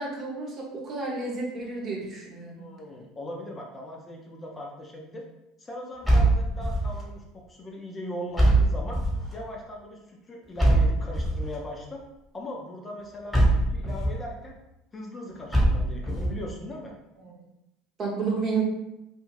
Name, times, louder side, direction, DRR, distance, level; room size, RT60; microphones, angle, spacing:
voice 1, 0.0-2.6 18.0-18.6, right 4 dB, 40° right, -2 dB, 0.9 m, -31 dB
voice 2, 2.6-5.3 5.6-9.0 9.3-12.0 12.3-14.6 14.9-16.9, left 1 dB, 25° left, 0 dB, 0.6 m, -39 dB
sound 1, 6.0-7.0 8.4-9.3 10.6-11.5 13.3-14.2 15.5-16.4, right 1 dB, ahead, 1.2 m, -22 dB
2.5 x 2.4 x 3.1 m, 0.89 s
hypercardioid pair, 70°, 0 cm